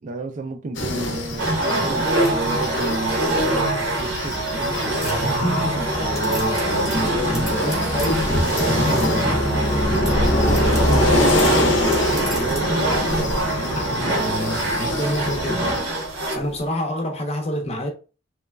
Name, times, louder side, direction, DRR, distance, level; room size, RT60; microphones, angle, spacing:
voice 1, 0.0-5.0 5.8-5.9 8.5-8.9 10.2-14.1 14.3-15.0, right 3 dB, 40° right, 0.3 m, -33 dB
sound 1, 0.7-15.8, left 1 dB, 85° left, 0.7 m, -24 dB
sound 2, 1.4-16.5, right 1 dB, 75° right, 0.9 m, -24 dB
sound 3, 2.2-3.8 4.3-4.7 5.0-5.8 6.2-9.4 9.9-12.7, right 1 dB, ahead, 0.8 m, -39 dB
voice 2, 5.0-9.5 10.1-11.0 13.7-16.0 16.3-17.9, left 1 dB, 35° left, 0.6 m, -28 dB
3.0 x 2.2 x 2.2 m
head